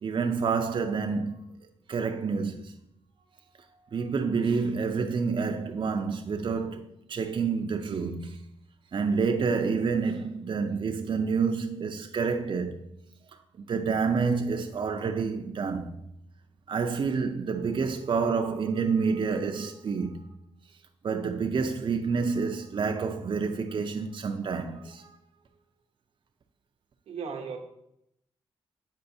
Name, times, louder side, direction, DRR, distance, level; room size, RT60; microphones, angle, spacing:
voice 1, 0.0-1.4 1.9-2.7 3.9-8.4 8.9-12.8 13.7-16.0 16.7-20.2 21.0-25.1, right 5 dB, 50° right, 0.5 m, -28 dB
voice 2, 27.1-27.6, right 6 dB, 85° right, 0.8 m, -35 dB
7.9 x 5.0 x 2.7 m
cardioid pair, 55°, 10 cm